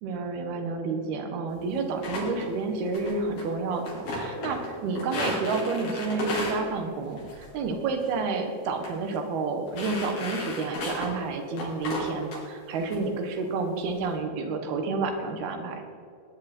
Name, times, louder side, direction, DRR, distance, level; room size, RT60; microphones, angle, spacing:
voice 1, 0.0-15.9, right 4 dB, 80° right, 5 dB, 3.5 m, -30 dB
sound 1, 2.0-2.5 2.9-3.4 3.7-4.7 5.0-6.6 7.2-7.5 7.8-8.1 8.7-8.9 9.1-9.2 9.7-11.2 11.6-12.4 12.8-13.0 13.4-13.9, left 2 dB, 65° left, 5.4 m, -34 dB
19.5 x 10.5 x 4.5 m, 2.5 s
omnidirectional pair, 4.5 m